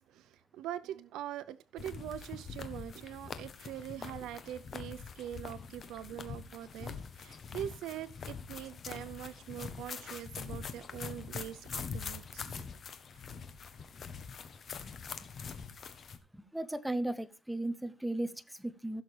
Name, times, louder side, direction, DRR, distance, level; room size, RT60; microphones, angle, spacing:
voice 1, 0.1-12.7, right 11 dB, 85° right, 0.6 m, -43 dB
sound 1, 1.8-16.2, left 6 dB, 40° left, 1.1 m, -44 dB
voice 2, 16.3-19.0, right 1 dB, 5° right, 0.7 m, -36 dB
15.5 x 6.6 x 3.3 m
cardioid pair, 145°, 0 cm